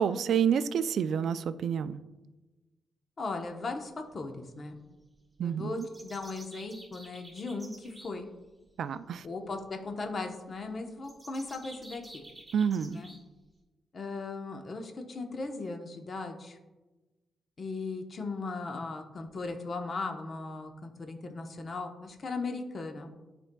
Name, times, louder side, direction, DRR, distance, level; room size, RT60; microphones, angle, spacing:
voice 1, 0.0-2.0 5.4-5.9 8.8-9.3 12.5-13.0, right 7 dB, 80° right, 13 dB, 0.3 m, -28 dB
voice 2, 3.2-4.8 5.4-8.3 9.2-12.2 12.9-13.1 13.9-16.6 17.6-23.1, left 3 dB, 45° left, 4 dB, 0.9 m, -37 dB
sound 1, 5.8-8.1 11.0-13.2, right 1 dB, 15° right, 1.8 m, -50 dB
12.5 x 4.4 x 2.2 m, 1.1 s
cardioid pair, 105°, 0 cm